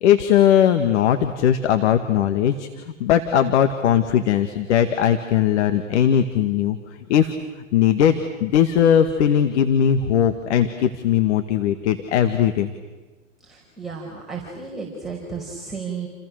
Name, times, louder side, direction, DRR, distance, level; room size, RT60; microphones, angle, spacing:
voice 1, 0.0-2.7 3.0-6.8 7.1-7.3 7.7-12.7, left 9 dB, 60° left, 8 dB, 2.0 m, -19 dB
voice 2, 13.4-16.1, right 5 dB, ahead, -5 dB, 5.3 m, -33 dB
30.0 x 29.5 x 6.6 m, 1.2 s
hypercardioid pair, 110°, 39 cm